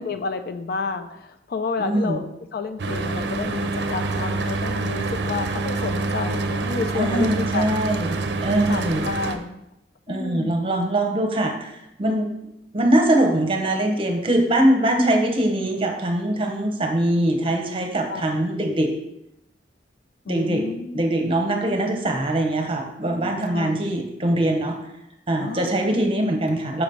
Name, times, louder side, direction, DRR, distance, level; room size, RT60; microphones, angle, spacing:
voice 1, 0.0-2.3 2.5-7.8 8.7-9.6 10.1-10.5 18.1-18.3 20.3-21.0 23.5-23.7 25.4-25.8, left 4 dB, 55° left, 9 dB, 0.4 m, -30 dB
voice 2, 1.8-2.2 6.9-9.1 10.1-12.3 12.7-19.0 20.3-24.8 25.3-26.8, right 1 dB, 30° right, 3 dB, 0.8 m, -22 dB
Mechanical fan, 2.8-9.4, right 3 dB, 70° right, 0.5 m, -26 dB
5.9 x 3.1 x 5.3 m, 0.83 s
head